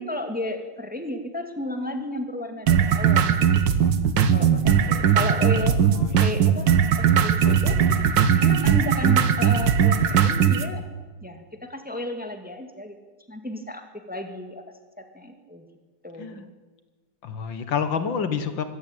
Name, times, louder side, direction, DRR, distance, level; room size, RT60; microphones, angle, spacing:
voice 1, 0.0-5.8 6.2-7.8 8.3-10.8 11.2-13.0 13.3-14.6 15.0-15.6 16.0-16.5, left 1 dB, 5° right, 6 dB, 1.9 m, -33 dB
sound 1, 2.7-10.7, right 8 dB, 65° right, 1.8 m, -19 dB
voice 2, 5.9-6.3 7.4-8.1 16.2-16.5 17.2-18.6, left 6 dB, 70° left, 10 dB, 2.1 m, -29 dB
24.0 x 14.5 x 9.1 m, 1.3 s
omnidirectional pair, 2.2 m